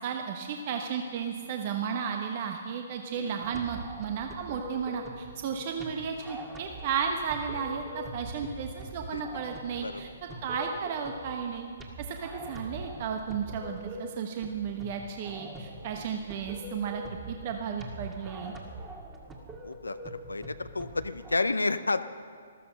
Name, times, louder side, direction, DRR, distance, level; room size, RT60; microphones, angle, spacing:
voice 1, 0.0-11.7 12.0-18.5, right 6 dB, 45° right, 4 dB, 1.1 m, -34 dB
sound 1, 3.4-21.3, right 1 dB, 15° right, 1.9 m, -43 dB
voice 2, 19.6-22.0, left 3 dB, 85° left, 11 dB, 0.6 m, -31 dB
14.0 x 13.5 x 6.4 m, 2.1 s
figure-of-eight pair, 130°, 0 cm